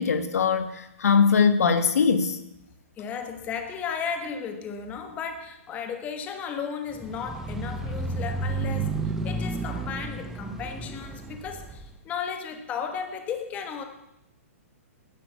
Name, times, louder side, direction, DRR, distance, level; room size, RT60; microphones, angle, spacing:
voice 1, 0.0-2.4, left 6 dB, 85° left, 10 dB, 1.7 m, -21 dB
voice 2, 3.0-13.8, left 6 dB, 20° left, 6 dB, 1.4 m, -34 dB
sound 1, 6.9-11.9, right 3 dB, 5° right, 0.9 m, -32 dB
11.5 x 10.0 x 8.2 m, 0.85 s
hypercardioid pair, 160°, 8 cm